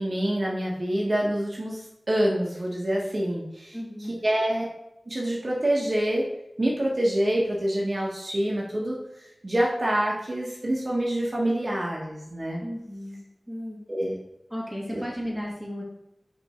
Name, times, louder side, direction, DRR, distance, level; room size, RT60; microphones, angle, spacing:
voice 1, 0.0-3.7 4.2-4.6 5.1-6.3 6.6-9.0 9.4-12.6 13.9-14.1, right 1 dB, 50° right, -3 dB, 1.5 m, -26 dB
voice 2, 3.7-4.2 12.6-13.8 14.5-15.8, equal, ahead, -5 dB, 2.7 m, -35 dB
5.3 x 5.2 x 4.5 m, 0.83 s
wide cardioid pair, 55°, 0 cm